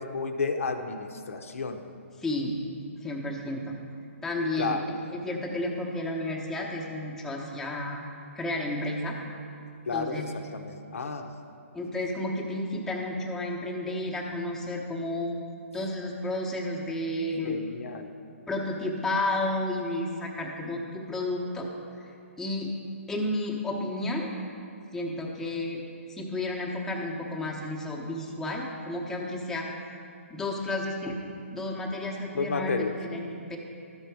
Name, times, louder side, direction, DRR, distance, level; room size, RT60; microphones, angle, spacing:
voice 1, 0.0-1.8 4.6-4.8 9.9-11.3 17.4-18.1 32.3-33.0, left 4 dB, 75° left, 6 dB, 0.7 m, -31 dB
voice 2, 2.2-2.6 3.0-3.8 4.2-8.0 8.3-9.2 9.9-10.3 11.7-15.4 15.7-17.6 18.5-21.7 22.0-22.1 22.4-22.7 23.1-24.3 24.9-25.8 26.1-29.7 30.3-31.2 31.5-33.6, left 1 dB, 5° left, -3 dB, 0.8 m, -32 dB
12.5 x 5.5 x 4.6 m, 2.5 s
hypercardioid pair, 150°, 7 cm